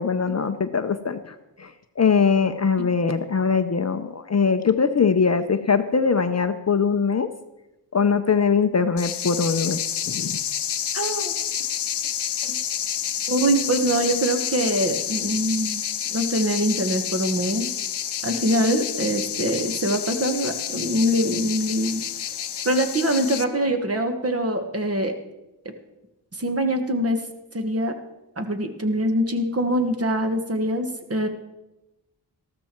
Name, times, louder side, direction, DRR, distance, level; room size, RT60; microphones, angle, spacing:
voice 1, 0.0-1.7 2.0-7.3 7.9-9.8 10.1-10.4, left 5 dB, 35° left, 9 dB, 0.6 m, -22 dB
sound 1, 9.0-23.4, left 9 dB, 65° left, 0.8 m, -29 dB
voice 2, 10.9-11.3 12.4-12.6 13.3-15.8 16.1-17.7 18.2-22.0 22.6-25.1 25.6-25.7 26.4-27.2 27.5-27.9 28.4-31.3, right 1 dB, 30° right, 6 dB, 1.4 m, -24 dB
13.5 x 13.0 x 4.5 m, 0.98 s
wide cardioid pair, 120°, 44 cm